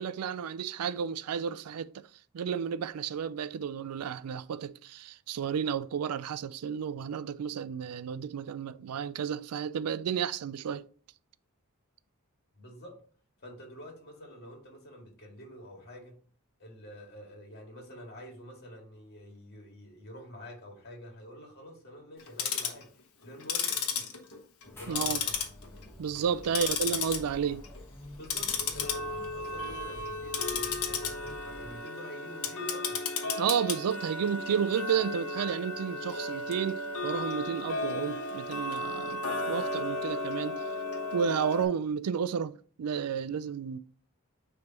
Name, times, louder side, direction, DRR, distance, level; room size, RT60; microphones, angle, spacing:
voice 1, 0.0-2.1 2.3-10.9 24.9-25.2 26.0-27.6 33.4-40.6 41.1-43.8, right 7 dB, 80° right, 0.4 m, -32 dB
voice 2, 12.5-13.0 13.4-16.2 16.6-24.1 24.8-25.4 26.3-26.7 28.1-33.0, equal, 50° left, 2.1 m, -47 dB
Tick-tock, 22.2-22.8 23.4-24.7 25.0-25.8 26.2-27.2 27.5-27.8 28.2-41.6, left 4 dB, 75° left, 1.1 m, -34 dB
sound 1, 24.6-31.8, left 1 dB, 10° left, 1.3 m, -49 dB
9.3 x 3.4 x 3.0 m
head